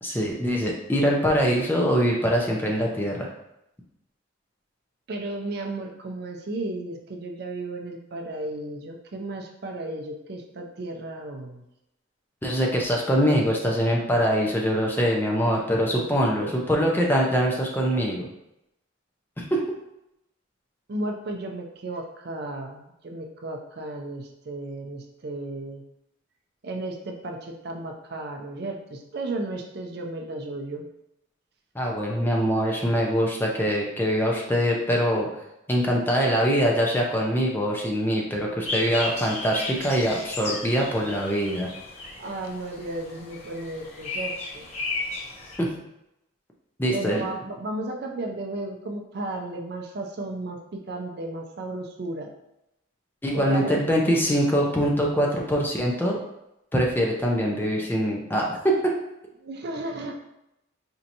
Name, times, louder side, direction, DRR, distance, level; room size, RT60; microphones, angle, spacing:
voice 1, 0.0-3.3 12.4-18.3 19.4-19.6 31.7-35.3 35.7-41.7 45.6-45.7 46.8-47.2 53.2-56.2 56.7-58.9, equal, 10° left, -1 dB, 0.5 m, -23 dB
voice 2, 5.1-11.6 15.8-16.1 16.4-16.7 20.9-25.8 26.6-30.9 42.2-44.7 46.9-52.3 53.3-53.9 59.4-60.1, right 2 dB, 50° right, 2 dB, 0.4 m, -34 dB
sound 1, 38.7-45.6, left 2 dB, 35° left, 0.8 m, -34 dB
4.4 x 2.8 x 2.6 m, 0.85 s
head